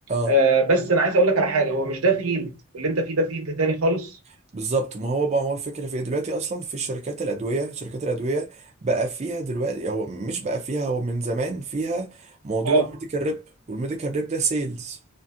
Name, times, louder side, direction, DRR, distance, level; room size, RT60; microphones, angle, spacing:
voice 1, 0.3-4.2 12.6-12.8, right 2 dB, 85° right, 0.9 m, -21 dB
voice 2, 4.5-12.8 13.1-13.4 13.7-15.0, right 3 dB, 30° right, 0.4 m, -27 dB
2.7 x 2.5 x 2.4 m
head